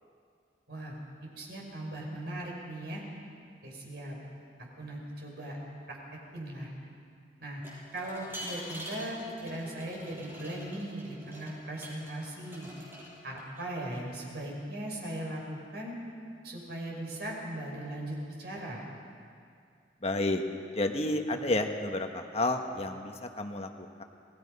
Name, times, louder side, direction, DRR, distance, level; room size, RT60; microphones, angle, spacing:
voice 1, 1.4-3.0 3.6-4.2 4.8-5.6 5.9-6.0 6.3-6.7 7.4-7.6 7.9-9.2 9.4-12.7 13.2-15.9 16.4-18.8, right 1 dB, 65° right, -2 dB, 5.9 m, -38 dB
sound 1, 7.6-12.1 12.4-13.6, equal, 15° right, 6.7 m, -45 dB
voice 2, 20.0-20.4 20.7-24.0, left 2 dB, 35° left, 4 dB, 1.4 m, -31 dB
28.5 x 20.0 x 5.5 m, 2.3 s
head